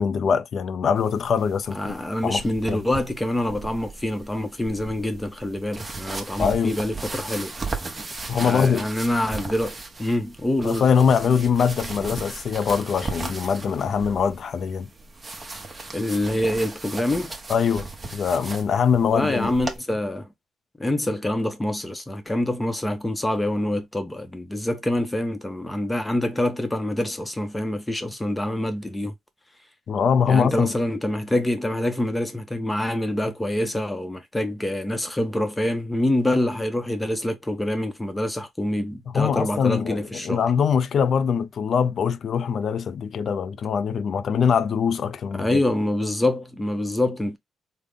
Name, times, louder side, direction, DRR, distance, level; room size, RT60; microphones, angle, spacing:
voice 1, 0.0-1.9 2.2-2.4 2.7-2.9 6.4-6.7 8.3-8.9 10.6-14.9 17.5-19.6 29.9-30.7 39.1-45.6, left 6 dB, 55° left, 0.4 m, -23 dB
sound 1, 1.0-19.8, right 3 dB, 25° right, 0.9 m, -37 dB
voice 2, 1.7-7.5 8.4-10.9 15.9-17.3 19.1-20.3 20.8-29.1 30.3-40.4 45.4-47.4, left 1 dB, 10° left, 0.7 m, -26 dB
3.6 x 2.1 x 3.5 m
cardioid pair, 90°, 0 cm